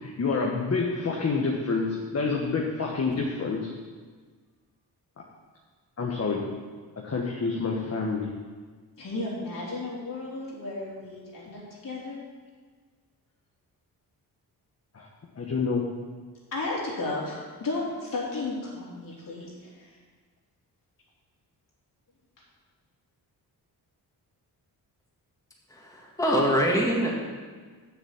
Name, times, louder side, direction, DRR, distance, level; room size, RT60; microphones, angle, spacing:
voice 1, 0.0-3.7 6.0-6.5 7.0-8.3 14.9-15.1 15.4-15.8, left 4 dB, 40° left, -1 dB, 1.3 m, -28 dB
voice 2, 9.0-12.2 16.5-20.0, left 2 dB, 55° left, -4 dB, 3.3 m, -34 dB
voice 3, 25.7-27.1, equal, 10° left, -3 dB, 1.9 m, -24 dB
7.3 x 7.0 x 7.1 m, 1.5 s
cardioid pair, 95°, 39 cm